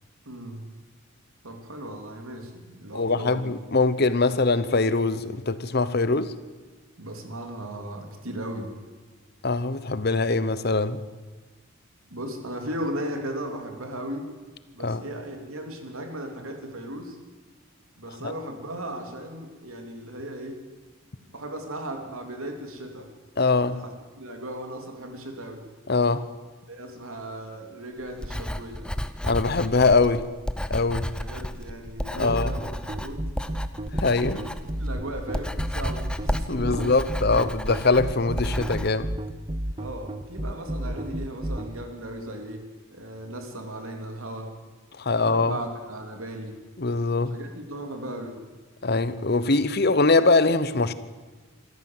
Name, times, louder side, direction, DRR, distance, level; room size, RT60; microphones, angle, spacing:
voice 1, 0.2-0.6 1.4-3.5 7.0-8.7 12.1-14.3 14.7-17.2 18.0-20.6 21.3-23.1 23.6-25.6 26.7-28.9 31.1-33.2 34.3-34.5 34.8-37.0 37.3-37.5 39.8-44.5 45.0-46.6 47.2-48.4, right 1 dB, 75° right, 3.3 m, -37 dB
voice 2, 2.9-6.3 9.4-11.0 14.8-15.0 18.2-18.3 23.4-23.8 25.9-26.3 29.2-30.2 30.7-31.1 32.1-32.5 33.9-34.4 36.5-39.1 45.0-45.6 46.8-47.4 48.8-50.9, left 3 dB, 45° left, 0.9 m, -22 dB
Writing, 28.1-38.9, equal, 5° left, 0.7 m, -33 dB
sound 1, 32.3-41.7, right 1 dB, 25° right, 0.9 m, -31 dB
25.5 x 14.0 x 7.8 m
head